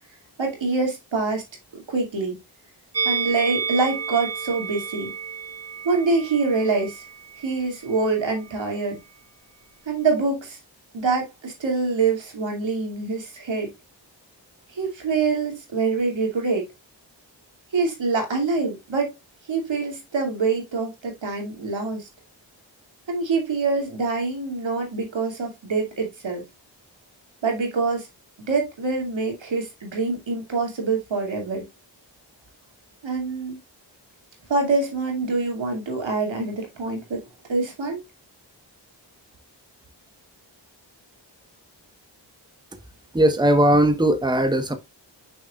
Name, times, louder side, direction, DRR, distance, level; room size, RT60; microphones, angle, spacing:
voice 1, 0.4-1.4 1.9-2.4 3.0-5.1 5.8-7.0 7.4-9.0 9.9-10.6 10.9-13.7 14.7-16.7 17.7-19.1 19.5-22.1 23.1-26.4 27.4-28.1 28.5-31.6 33.0-33.6 34.5-37.2 37.5-38.0, right 4 dB, 85° right, 2.5 m, -25 dB
Musical instrument, 2.9-8.2 8.4-8.6, right 5 dB, 35° right, 1.0 m, -31 dB
voice 2, 43.1-44.7, right 1 dB, 10° right, 1.1 m, -18 dB
6.4 x 6.1 x 2.4 m
cardioid pair, 55°, 44 cm